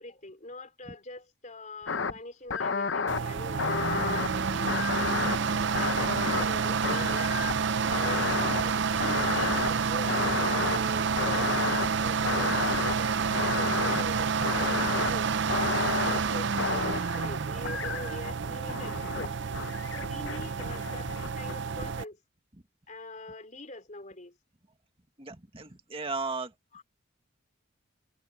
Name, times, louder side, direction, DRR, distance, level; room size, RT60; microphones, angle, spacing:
voice 1, 0.0-3.9 4.3-7.3 7.8-15.3 16.0-19.4 19.9-22.2 22.9-24.3 26.7-26.8, left 2 dB, 35° left, 3.9 m, -44 dB
sound 1, 1.9-2.1 2.5-3.2 3.6-4.3 4.7-6.6 6.8-7.7 7.9-8.6 9.0-9.7 10.1-10.8 11.2-11.9 12.3-13.0 13.3-14.0 14.4-15.1 15.5-16.2 16.6-17.3 17.7-18.3 18.7-19.3 19.5-21.5, left 5 dB, 60° left, 0.8 m, -31 dB
sound 2, 3.1-22.0, right 5 dB, 60° right, 0.6 m, -29 dB
voice 2, 25.2-26.5, right 3 dB, 25° right, 1.9 m, -36 dB
head